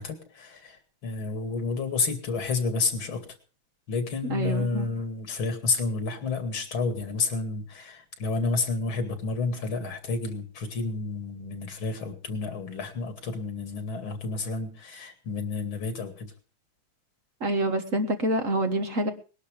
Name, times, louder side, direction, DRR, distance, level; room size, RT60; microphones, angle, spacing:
voice 1, 0.0-3.2 3.9-16.3, left 4 dB, 85° left, 8 dB, 3.1 m, -30 dB
voice 2, 4.3-4.9 17.4-19.1, right 1 dB, 40° right, 6 dB, 1.7 m, -26 dB
20.0 x 11.5 x 5.1 m, 0.37 s
omnidirectional pair, 2.2 m